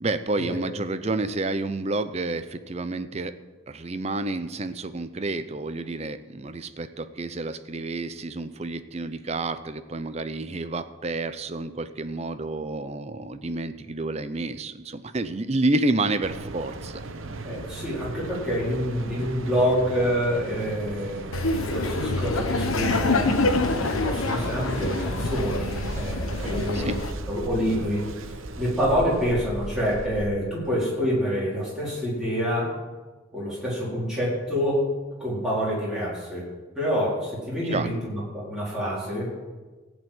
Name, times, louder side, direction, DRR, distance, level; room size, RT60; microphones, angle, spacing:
voice 1, 0.0-3.3 3.7-17.0 26.7-27.0 37.7-38.0, right 2 dB, 30° right, 12 dB, 0.5 m, -29 dB
Mechanical fan, 16.2-30.3, right 2 dB, 75° right, 0.9 m, -37 dB
voice 2, 17.4-23.4 23.9-27.0 27.3-32.7 33.3-34.9 35.2-36.4 36.7-39.3, equal, 5° right, -7 dB, 4.1 m, -27 dB
Laughter, 21.3-27.1, left 2 dB, 85° left, 1.1 m, -26 dB
15.5 x 5.2 x 9.0 m, 1.3 s
head